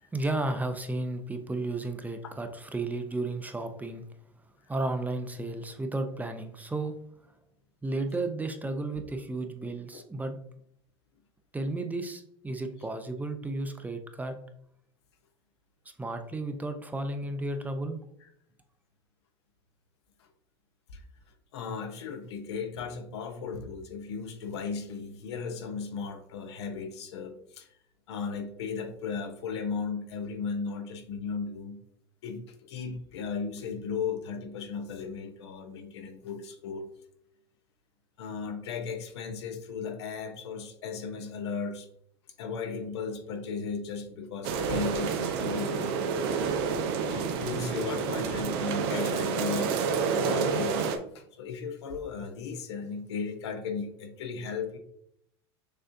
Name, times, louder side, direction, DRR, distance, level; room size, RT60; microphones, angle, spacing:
voice 1, 0.1-4.0 4.7-6.9 7.8-10.4 11.5-14.4 16.0-18.0, right 2 dB, 10° right, 7 dB, 0.5 m, -33 dB
voice 2, 21.5-27.7 28.1-31.8 32.2-36.9 38.2-41.9 42.4-46.1 47.1-49.8 50.1-50.9 51.1-54.8, left 5 dB, 85° left, 6 dB, 0.7 m, -36 dB
sound 1, 44.4-51.0, right 6 dB, 70° right, 0.6 m, -29 dB
6.4 x 2.5 x 2.5 m, 0.72 s
hypercardioid pair, 90°, 14 cm